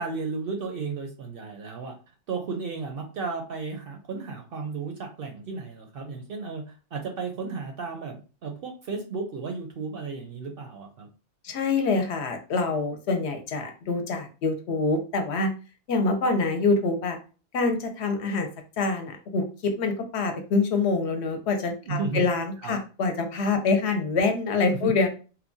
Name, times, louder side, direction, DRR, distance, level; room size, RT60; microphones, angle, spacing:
voice 1, 0.0-1.9 2.3-11.1 21.8-22.3 22.6-22.8 24.8-24.9, right 4 dB, 60° right, 3 dB, 0.6 m, -34 dB
voice 2, 11.4-15.5 15.9-17.2 17.5-18.5 18.8-25.1, left 3 dB, 70° left, 6 dB, 0.8 m, -25 dB
2.9 x 2.2 x 2.5 m, 0.35 s
omnidirectional pair, 1.2 m